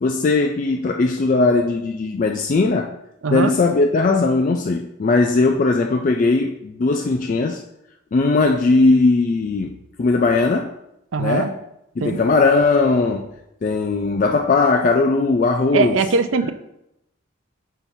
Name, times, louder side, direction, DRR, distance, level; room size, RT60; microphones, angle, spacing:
voice 1, 0.0-3.0 3.3-7.6 8.1-10.7 11.2-11.6 12.0-13.3 13.6-16.0, left 3 dB, 40° left, 0.3 m, -18 dB
voice 2, 3.2-3.5 11.1-11.5 12.0-12.2 15.7-16.5, right 4 dB, 75° right, 0.5 m, -20 dB
7.1 x 5.6 x 2.7 m
head